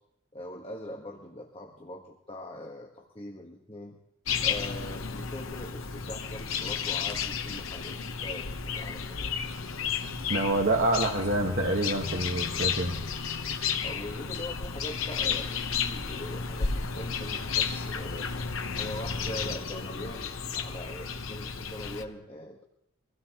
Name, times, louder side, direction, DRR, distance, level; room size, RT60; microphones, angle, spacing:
voice 1, 0.3-4.0 4.4-9.9 13.8-18.3 18.7-22.6, left 1 dB, 25° left, 1 dB, 1.3 m, -42 dB
sound 1, 4.3-22.0, left 6 dB, 80° left, 1.0 m, -33 dB
voice 2, 10.0-13.0, right 1 dB, 55° right, 1 dB, 1.5 m, -27 dB
24.5 x 16.5 x 3.0 m, 0.77 s
head